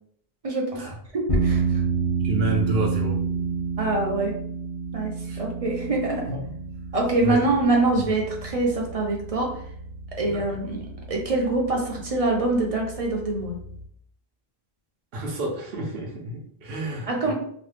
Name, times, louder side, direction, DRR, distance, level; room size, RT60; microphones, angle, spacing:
voice 1, 0.4-0.8 1.1-1.8 3.8-4.3 4.9-6.3 6.9-9.5 10.2-13.6 17.1-17.3, right 2 dB, 40° right, 0 dB, 0.6 m, -25 dB
sound 1, 1.3-13.8, right 4 dB, 40° left, 0.8 m, -30 dB
voice 2, 2.2-3.2 5.3-5.4 6.3-6.4 7.2-7.4 10.2-10.4 15.1-17.3, right 1 dB, 70° right, -1 dB, 0.9 m, -29 dB
2.9 x 2.2 x 3.2 m, 0.64 s
omnidirectional pair, 1.0 m